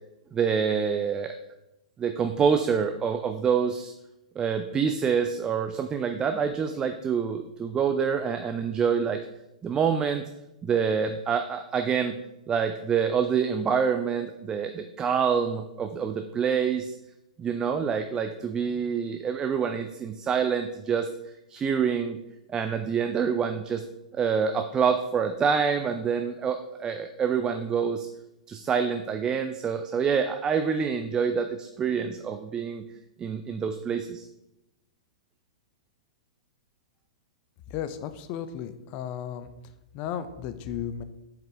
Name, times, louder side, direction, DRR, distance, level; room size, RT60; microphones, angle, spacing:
voice 1, 0.3-1.3 2.0-3.9 4.4-9.2 9.6-10.2 10.6-12.2 12.5-17.0 17.4-21.1 21.5-22.2 22.5-23.8 24.1-28.1 28.5-32.8 33.2-34.3, right 6 dB, 20° right, 7 dB, 0.4 m, -26 dB
voice 2, 37.7-39.5 39.9-41.0, left 9 dB, 40° left, 12 dB, 0.5 m, -34 dB
7.6 x 4.8 x 3.5 m, 0.91 s
figure-of-eight pair, 105°, 4 cm